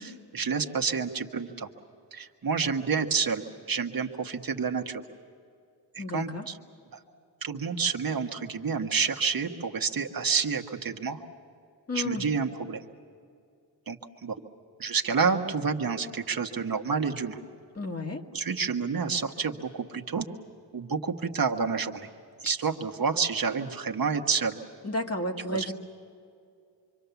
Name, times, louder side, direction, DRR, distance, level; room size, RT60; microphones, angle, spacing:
voice 1, 0.0-1.7 2.1-5.0 5.9-6.6 6.9-7.0 7.4-11.2 11.9-12.8 13.9-14.4 14.8-17.4 18.3-20.3 20.7-22.1 22.4-24.6 25.5-25.7, right 5 dB, 55° right, 4 dB, 1.3 m, -29 dB
voice 2, 6.0-6.5 11.9-12.3 17.8-18.2 24.8-25.7, left 1 dB, 35° left, 2 dB, 1.9 m, -32 dB
26.0 x 25.0 x 7.0 m, 2.4 s
wide cardioid pair, 125°, 43 cm